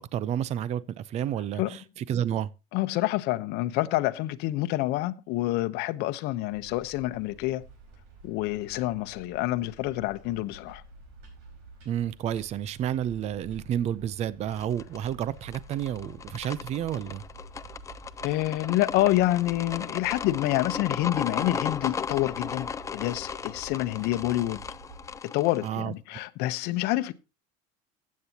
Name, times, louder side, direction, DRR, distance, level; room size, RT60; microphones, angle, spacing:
voice 1, 0.0-2.5 11.9-17.2 25.6-25.9, right 10 dB, 35° right, 0.6 m, -30 dB
voice 2, 2.7-7.6 8.2-10.8 18.2-24.6 25.2-27.1, left 16 dB, 60° left, 0.9 m, -27 dB
sound 1, 6.5-25.1, right 3 dB, 70° right, 4.8 m, -49 dB
sound 2, 14.5-25.7, left 6 dB, 15° left, 0.5 m, -36 dB
15.0 x 8.5 x 2.9 m
cardioid pair, 140°, 19 cm